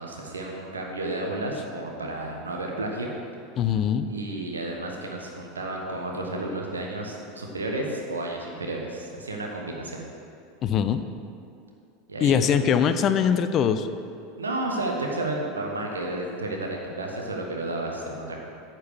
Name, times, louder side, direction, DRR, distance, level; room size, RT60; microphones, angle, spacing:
voice 1, 0.0-3.1 4.1-10.0 12.1-12.7 14.4-18.4, right 2 dB, 75° right, 0 dB, 1.2 m, -32 dB
voice 2, 3.6-4.1 10.6-11.0 12.2-13.9, left 8 dB, 35° left, 11 dB, 0.4 m, -22 dB
9.4 x 4.5 x 7.2 m, 2.5 s
figure-of-eight pair, 80°, 0 cm